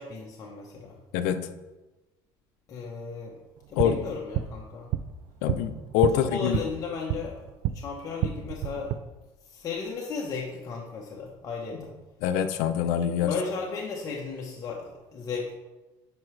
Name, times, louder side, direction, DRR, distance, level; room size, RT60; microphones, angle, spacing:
voice 1, 0.0-1.0 2.7-3.4 3.7-4.9 6.1-7.4 7.7-8.9 9.4-11.9 13.2-15.5, left 4 dB, 35° left, -2 dB, 1.0 m, -35 dB
sound 1, 3.6-7.8 8.1-9.0, right 11 dB, 55° right, 0.4 m, -31 dB
voice 2, 5.4-6.6 12.2-13.3, left 9 dB, 80° left, 9 dB, 0.6 m, -25 dB
11.0 x 4.7 x 3.3 m, 1.1 s
cardioid pair, 140°, 10 cm